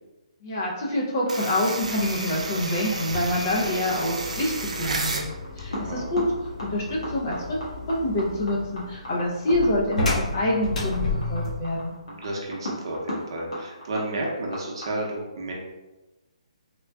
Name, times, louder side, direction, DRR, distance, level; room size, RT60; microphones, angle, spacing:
voice 1, 0.4-5.2 5.5-6.2 6.6-7.6 7.9-11.9, left 1 dB, 25° left, -3 dB, 0.5 m, -26 dB
sound 1, 1.2-14.9, left 1 dB, 55° left, 1.4 m, -37 dB
sound 2, 1.3-5.3, right 3 dB, 70° right, 0.6 m, -32 dB
sound 3, 1.8-11.7, left 2 dB, 75° left, 1.4 m, -33 dB
voice 2, 5.7-6.1 12.1-15.5, right 1 dB, 40° right, -1 dB, 0.7 m, -32 dB
3.7 x 2.2 x 3.3 m, 1.0 s
hypercardioid pair, 175°, 4 cm